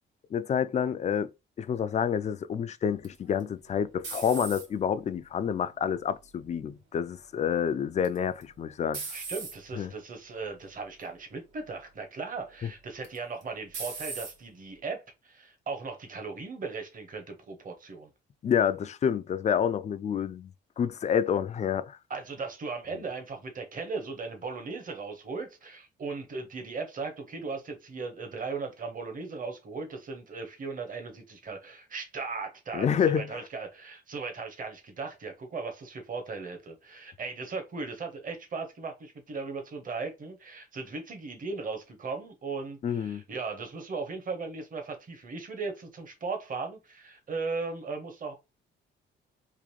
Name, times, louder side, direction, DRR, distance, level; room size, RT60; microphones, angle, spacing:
voice 1, 0.3-1.3 1.6-9.0 9.8-9.9 18.4-20.5 20.8-22.0 32.7-33.4 42.8-43.2, left 8 dB, 35° left, 0.4 m, -28 dB
sound 1, 3.0-5.0 5.5-6.0 8.0-8.4 8.9-9.6 10.4-10.6 11.0-11.1 13.0-13.4 13.7-14.4, right 4 dB, 75° right, 1.6 m, -38 dB
voice 2, 9.1-18.1 22.1-48.3, right 4 dB, 45° right, 1.2 m, -37 dB
3.7 x 2.6 x 3.1 m
cardioid pair, 90°, 20 cm